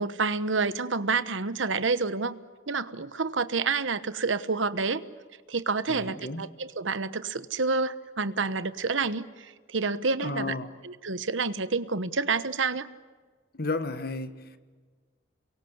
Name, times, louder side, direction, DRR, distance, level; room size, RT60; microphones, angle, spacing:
voice 1, 0.0-2.4 2.7-5.0 5.5-10.5 10.8-12.9, right 4 dB, 85° right, 1.2 m, -28 dB
voice 2, 5.9-6.5 10.2-10.7 13.5-14.6, left 3 dB, 55° left, 1.6 m, -33 dB
29.0 x 23.5 x 8.0 m
head